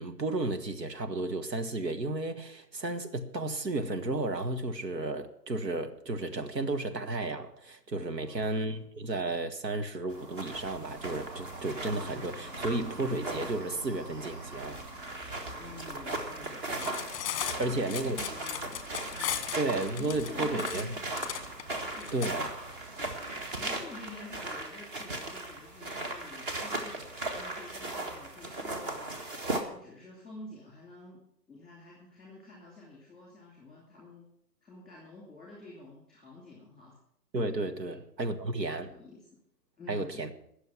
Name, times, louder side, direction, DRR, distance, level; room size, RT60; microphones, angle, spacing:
voice 1, 0.0-14.8 17.6-18.2 19.5-20.9 22.1-22.5 37.3-38.9 39.9-40.3, right 2 dB, 85° right, 1.6 m, -33 dB
voice 2, 8.1-8.6 15.6-17.0 17.2-18.9 19.2-19.5 19.9-21.1 22.0-22.2 23.5-29.2 29.7-31.2 31.5-34.3 34.6-37.0 37.8-38.0 38.5-39.3 39.8-40.3, left 2 dB, ahead, 2.6 m, -49 dB
sound 1, 10.1-29.6, right 2 dB, 30° right, 1.8 m, -38 dB
sound 2, 10.5-23.8, right 2 dB, 50° right, 1.9 m, -51 dB
Cutlery silverware, 16.7-22.3, left 10 dB, 20° left, 1.0 m, -36 dB
19.0 x 6.9 x 6.0 m
hypercardioid pair, 140°, 49 cm